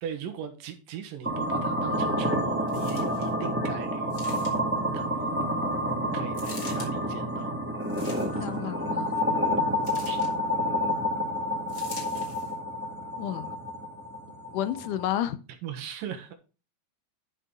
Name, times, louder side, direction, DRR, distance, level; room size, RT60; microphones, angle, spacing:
voice 1, 0.0-4.1 4.9-5.4 6.1-7.5 9.4-10.3 15.6-16.3, right 8 dB, 80° right, 3.0 m, -39 dB
sound 1, 1.2-15.3, equal, 5° right, 1.1 m, -29 dB
sound 2, 2.7-3.3 4.1-4.8 6.3-6.9 7.8-8.5 9.8-10.3 11.7-12.5 13.2-13.3, left 3 dB, 35° left, 2.6 m, -44 dB
voice 2, 8.4-9.1 13.2-13.5 14.5-15.4, left 12 dB, 75° left, 2.0 m, -31 dB
11.5 x 5.6 x 3.8 m
omnidirectional pair, 4.0 m